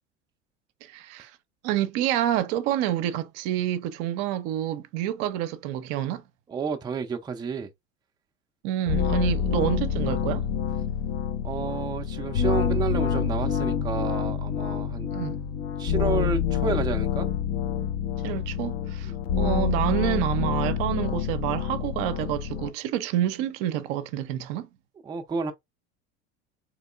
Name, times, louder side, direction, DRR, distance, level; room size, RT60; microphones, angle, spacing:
voice 1, 0.8-1.3 1.6-6.2 8.6-10.5 15.1-15.4 18.2-24.7, right 12 dB, 55° right, 0.6 m, -28 dB
voice 2, 6.5-7.7 11.4-15.1 15.8-17.3 19.0-19.1 25.0-25.5, right 6 dB, 10° right, 0.4 m, -30 dB
sound 1, 8.9-22.7, left 7 dB, 40° left, 0.5 m, -27 dB
3.5 x 3.1 x 2.4 m
hypercardioid pair, 75°, 35 cm